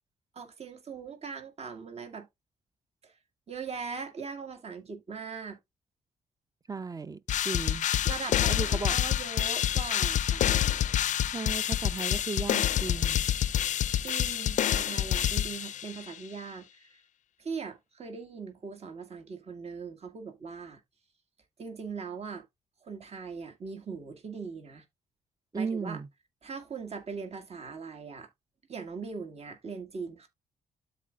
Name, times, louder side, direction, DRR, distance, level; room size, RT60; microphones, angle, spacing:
voice 1, 0.3-2.3 3.0-3.1 3.5-5.6 8.0-10.5 14.0-17.0 17.4-20.8 21.6-22.4 22.8-24.8 25.5-26.0 26.4-28.3 28.7-30.3, right 5 dB, 50° right, 1.9 m, -40 dB
voice 2, 6.7-7.2 7.4-7.9 8.5-9.0 11.3-13.3 25.5-26.1, right 4 dB, 25° right, 0.7 m, -35 dB
sound 1, 7.3-16.1, left 11 dB, 60° left, 0.4 m, -27 dB
12.5 x 4.3 x 2.4 m
cardioid pair, 80°, 14 cm